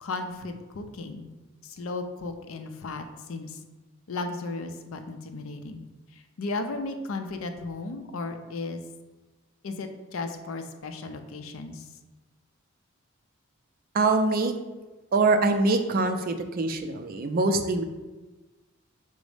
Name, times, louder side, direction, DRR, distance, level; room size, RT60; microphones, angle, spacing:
voice 1, 0.0-1.3 1.6-3.6 4.1-5.8 6.1-8.8 9.6-11.9, left 3 dB, 75° left, 7 dB, 0.5 m, -35 dB
voice 2, 13.9-14.5 15.1-17.8, right 3 dB, 45° right, 7 dB, 0.4 m, -24 dB
5.1 x 2.0 x 4.8 m, 1.2 s
head